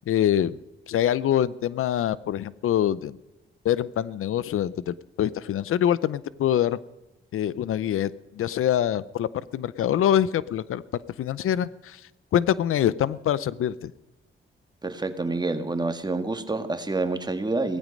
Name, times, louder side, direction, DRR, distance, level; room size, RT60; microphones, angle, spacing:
voice 1, 0.1-0.6 0.9-3.2 3.6-6.8 7.3-8.1 8.4-10.8 11.2-12.0 12.3-13.9, left 10 dB, 85° left, 19 dB, 0.6 m, -24 dB
voice 2, 14.8-17.8, right 3 dB, 20° right, 8 dB, 1.7 m, -28 dB
17.0 x 14.5 x 5.3 m, 0.99 s
cardioid pair, 90°, 21 cm